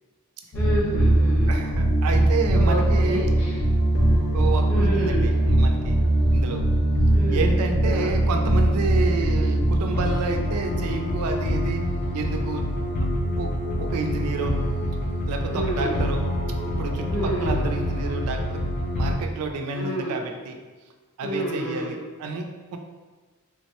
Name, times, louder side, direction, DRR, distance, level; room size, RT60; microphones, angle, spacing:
sound 1, 0.5-19.1, right 1 dB, 45° left, 0.5 m, -22 dB
voice 1, 0.5-1.6 2.5-2.8 3.1-3.6 4.7-5.2 7.1-7.5 7.8-8.1 15.5-16.0 17.1-17.6 19.7-20.1 21.2-21.9, equal, 10° left, -10 dB, 0.8 m, -29 dB
voice 2, 1.5-3.3 4.3-6.0 6.3-6.6 7.3-11.8 12.1-12.7 13.0-13.1 13.4-13.5 13.8-14.6 15.3-16.2 16.6-18.6 18.9-20.6 21.2-22.8, right 4 dB, 85° right, 4 dB, 0.3 m, -30 dB
3.3 x 2.1 x 2.8 m, 1.4 s
head